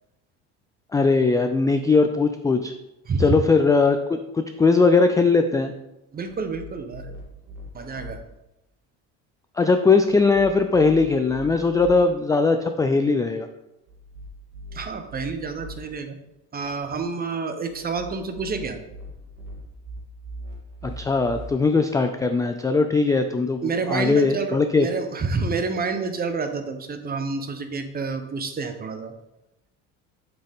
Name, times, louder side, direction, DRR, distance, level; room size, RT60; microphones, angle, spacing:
voice 1, 0.9-2.7 3.2-5.7 9.5-13.5 20.8-24.9, left 4 dB, 10° left, 7 dB, 0.3 m, -20 dB
voice 2, 6.1-7.2 7.7-8.2 14.7-16.2 16.5-18.8 23.6-29.1, right 4 dB, 25° right, 8 dB, 0.9 m, -28 dB
sound 1, 6.2-8.2 10.1-12.0 13.9-15.8 17.7-21.5, equal, 80° right, 2.5 m, -41 dB
7.7 x 6.5 x 3.6 m, 0.93 s
supercardioid pair, 115°, 35 cm